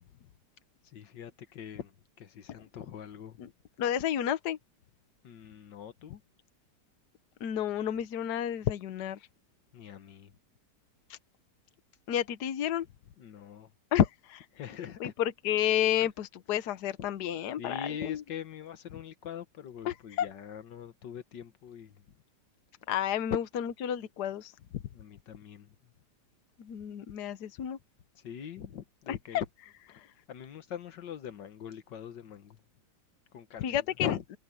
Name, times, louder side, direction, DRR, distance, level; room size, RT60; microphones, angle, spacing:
voice 1, 0.8-3.4 5.2-6.2 9.7-10.3 13.2-13.7 14.5-15.1 16.0-16.1 17.6-22.0 24.9-25.8 28.2-29.5 30.0-32.6 33.3-34.2, left 8 dB, 85° left, 1.9 m, -42 dB
voice 2, 3.8-4.6 7.4-9.2 11.1-11.2 12.1-12.9 13.9-14.4 15.0-18.2 19.8-20.3 22.9-24.5 26.6-27.8 29.1-29.4 33.6-34.1, left 10 dB, 70° left, 1.5 m, -30 dB
omnidirectional pair, 1.9 m